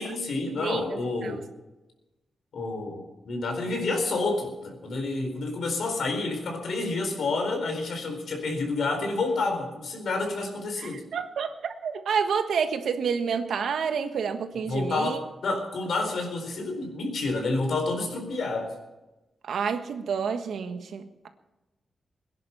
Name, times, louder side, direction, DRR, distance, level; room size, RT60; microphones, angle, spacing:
voice 1, 0.0-1.4 2.5-11.0 14.7-18.7, left 3 dB, 65° left, 3 dB, 4.3 m, -29 dB
voice 2, 0.6-1.4 10.8-11.5 11.8-15.2 19.4-21.3, right 6 dB, 80° right, 7 dB, 1.4 m, -29 dB
22.5 x 10.5 x 5.7 m, 1.1 s
wide cardioid pair, 170°, 0 cm